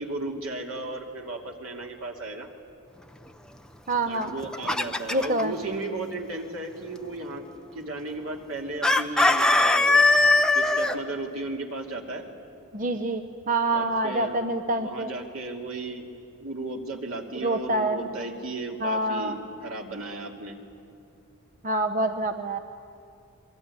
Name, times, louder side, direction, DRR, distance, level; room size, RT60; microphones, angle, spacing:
voice 1, 0.0-2.5 4.0-7.5 7.7-10.0 10.5-12.2 13.7-14.5 14.8-16.1 16.4-20.6, right 2 dB, 75° right, 2 dB, 2.8 m, -35 dB
voice 2, 3.9-4.3 5.1-5.5 12.7-13.2 13.5-15.1 17.4-18.0 18.8-19.3 21.6-22.6, right 2 dB, 35° right, 7 dB, 0.8 m, -26 dB
Chicken rooster, 4.2-5.4 8.8-11.0, left 2 dB, 5° left, 0.7 m, -20 dB
27.5 x 21.5 x 9.8 m, 2.5 s
head